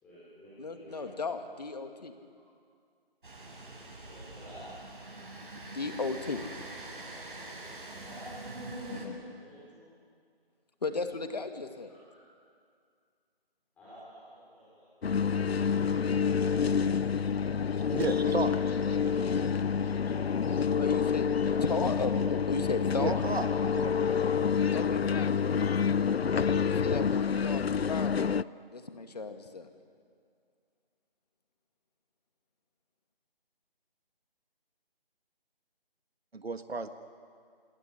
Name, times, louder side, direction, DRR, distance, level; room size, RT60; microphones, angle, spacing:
voice 1, 0.0-1.1 3.8-4.7 6.3-6.4 7.2-8.3 9.1-9.9 12.1-12.2 13.8-18.3 19.0-19.4 24.1-24.2, equal, 5° left, -13 dB, 4.6 m, -54 dB
voice 2, 0.6-2.1 5.7-6.4 8.9-9.2 10.8-11.9 20.8-21.3 21.6-23.2 24.7-26.1 26.6-28.2 28.7-29.7, left 4 dB, 40° left, 7 dB, 2.1 m, -35 dB
sound 1, 3.2-9.1, right 2 dB, 55° right, 7.6 m, -44 dB
sound 2, 15.0-28.4, left 6 dB, 85° left, 0.7 m, -28 dB
voice 3, 17.9-18.6 23.0-23.4 23.7-23.9 36.3-36.9, right 3 dB, 90° right, 8 dB, 1.7 m, -32 dB
28.0 x 20.0 x 10.0 m, 2.2 s
figure-of-eight pair, 175°, 30 cm